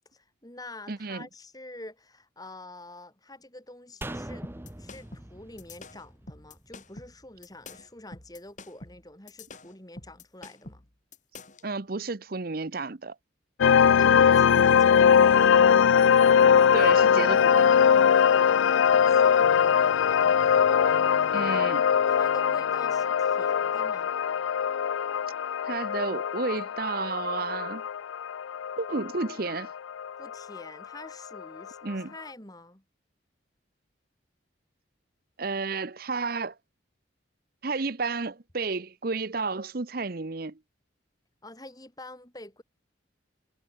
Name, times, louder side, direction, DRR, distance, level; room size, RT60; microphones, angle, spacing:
voice 1, 0.1-4.5 4.8-10.8 14.0-15.6 18.5-24.1 30.2-32.8 41.4-42.6, left 2 dB, 20° left, 3.4 m, -46 dB
voice 2, 0.9-1.3 11.6-13.1 16.7-17.7 21.3-21.8 25.6-27.8 28.8-29.7 31.8-32.1 35.4-36.5 37.6-40.6, right 3 dB, 50° right, 0.8 m, -31 dB
sound 1, 4.0-7.3 7.6-7.7, right 1 dB, 10° right, 0.7 m, -42 dB
sound 2, 4.4-11.7, left 3 dB, 40° left, 2.9 m, -46 dB
sound 3, 13.6-30.6, left 7 dB, 80° left, 0.4 m, -21 dB
head